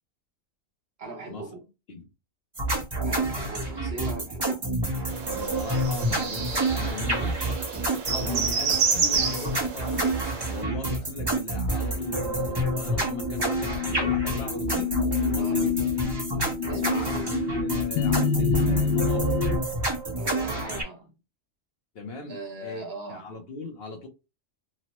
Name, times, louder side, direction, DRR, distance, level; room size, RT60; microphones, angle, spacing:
voice 1, 1.0-1.7 3.0-4.7 8.2-8.5 15.4-15.6 16.6-17.3 20.2-21.1 22.3-23.2, right 2 dB, 55° right, 1.1 m, -39 dB
sound 1, 2.6-20.8, right 2 dB, 25° right, 0.6 m, -28 dB
sound 2, 5.1-10.6, right 5 dB, 90° right, 1.1 m, -29 dB
voice 2, 5.3-7.4 8.1-10.2 10.5-14.9 15.3-15.9 16.8-17.2 17.5-19.4 21.9-24.1, left 3 dB, 60° left, 0.8 m, -38 dB
sound 3, 12.0-19.6, left 6 dB, 80° left, 1.0 m, -28 dB
3.0 x 2.0 x 2.8 m
omnidirectional pair, 1.3 m